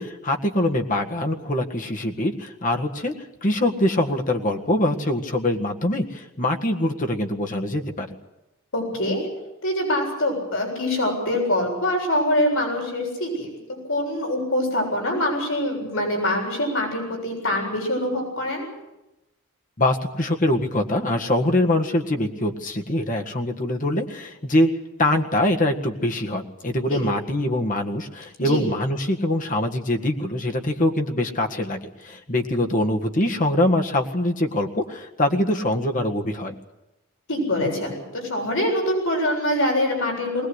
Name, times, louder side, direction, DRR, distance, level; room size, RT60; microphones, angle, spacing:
voice 1, 0.0-3.1 3.4-8.1 19.8-24.7 25.0-36.5, left 1 dB, 35° left, 3 dB, 1.8 m, -23 dB
voice 2, 8.7-9.2 9.6-13.5 13.9-18.7 26.9-27.0 28.4-28.7 37.3-40.5, left 1 dB, 65° left, 0 dB, 7.6 m, -24 dB
21.0 x 19.5 x 8.2 m, 0.97 s
head